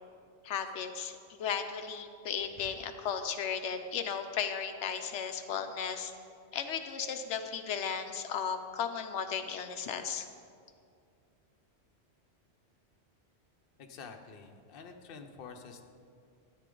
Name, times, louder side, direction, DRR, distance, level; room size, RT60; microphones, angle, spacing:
voice 1, 0.4-6.1 6.5-10.3, left 7 dB, 85° left, 6 dB, 0.9 m, -35 dB
voice 2, 13.8-15.8, left 5 dB, 55° left, 4 dB, 0.9 m, -48 dB
13.5 x 9.2 x 3.8 m, 2.3 s
omnidirectional pair, 1.2 m